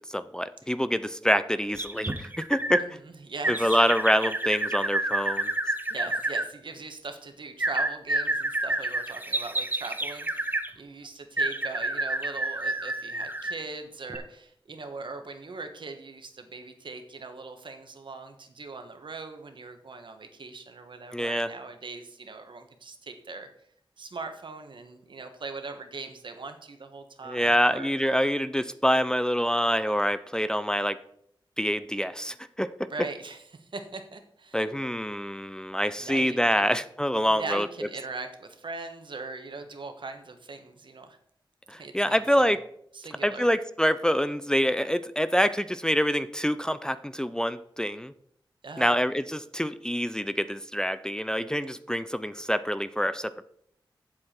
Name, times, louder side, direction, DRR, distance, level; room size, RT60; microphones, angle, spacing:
voice 1, 0.1-2.9 3.5-5.5 21.1-21.5 27.3-31.0 31.6-32.9 34.5-37.7 41.7-42.6 43.2-48.1 48.8-53.5, equal, 10° left, 12 dB, 0.4 m, -26 dB
sound 1, 1.8-2.8 3.4-6.5 7.6-10.7 11.4-13.6 14.1-14.2, right 2 dB, 20° right, 0.8 m, -29 dB
voice 2, 2.8-3.9 5.9-23.5 24.0-27.9 32.8-34.7 36.0-36.7 37.3-41.2 41.8-42.6 42.9-43.5 48.6-49.0, right 3 dB, 70° right, 6 dB, 1.2 m, -40 dB
8.5 x 7.6 x 4.4 m, 0.70 s
wide cardioid pair, 80°, 9 cm